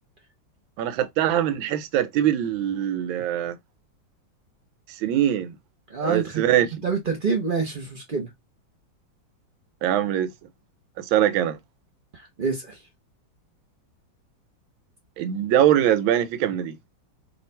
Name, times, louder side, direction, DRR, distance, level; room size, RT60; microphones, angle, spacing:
voice 1, 0.8-3.6 5.0-5.6 6.0-6.7 9.8-10.3 11.0-11.6 15.2-16.8, right 11 dB, 85° right, 1.4 m, -22 dB
voice 2, 5.9-6.4 6.8-8.3 12.1-12.8, right 4 dB, 50° right, 0.6 m, -27 dB
3.2 x 2.3 x 4.3 m
omnidirectional pair, 2.1 m